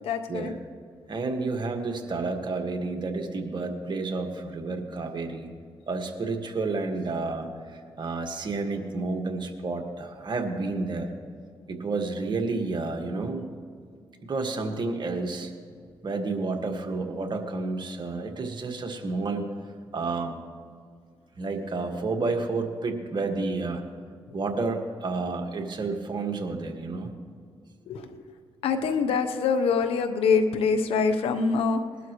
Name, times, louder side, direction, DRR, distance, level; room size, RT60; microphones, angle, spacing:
voice 1, 0.0-0.5 24.3-24.4 27.9-28.3 28.6-31.8, left 5 dB, 90° left, 8 dB, 0.9 m, -25 dB
voice 2, 1.1-5.5 5.9-11.1 11.7-13.5 14.2-15.5 16.0-19.5 19.9-20.4 21.4-23.8 24.3-27.1, right 3 dB, 50° right, 4 dB, 1.7 m, -30 dB
20.5 x 12.0 x 3.1 m, 2.2 s
cardioid pair, 55°, 10 cm